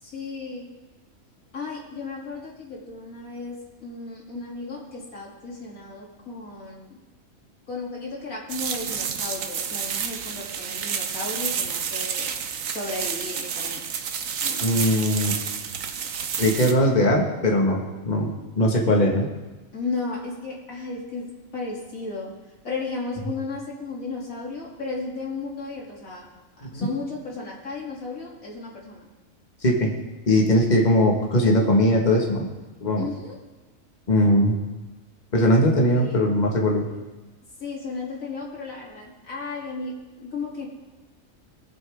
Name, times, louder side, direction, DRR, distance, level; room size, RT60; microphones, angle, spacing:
voice 1, 0.0-0.7 1.5-7.0 7.7-12.3 12.7-13.8 14.4-14.8 19.7-22.3 22.6-26.2 26.7-29.1 33.0-33.4 35.8-36.2 37.6-40.7, left 3 dB, 85° left, -4 dB, 3.2 m, -34 dB
sound 1, 8.5-16.7, right 7 dB, 75° right, 1.2 m, -30 dB
voice 2, 14.6-15.3 16.4-18.3 18.5-19.3 26.6-26.9 29.6-29.9 30.3-32.5 32.8-33.0 34.1-34.6 35.3-36.9, left 1 dB, 35° left, 0 dB, 1.8 m, -20 dB
21.0 x 7.5 x 3.6 m, 1.2 s
omnidirectional pair, 1.4 m